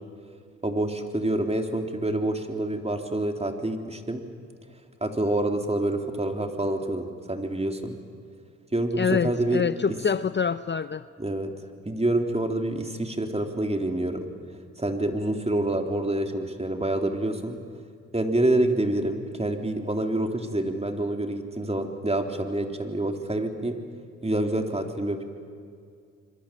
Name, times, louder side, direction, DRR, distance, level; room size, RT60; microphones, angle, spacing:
voice 1, 0.6-4.2 5.0-7.9 8.7-9.7 11.2-11.5 11.9-14.3 14.8-17.6 18.1-23.8 24.2-25.2, right 1 dB, 20° right, 4 dB, 3.5 m, -27 dB
voice 2, 8.9-11.0, left 6 dB, 35° left, 14 dB, 0.7 m, -26 dB
26.5 x 23.5 x 7.6 m, 2.2 s
supercardioid pair, 50°, 32 cm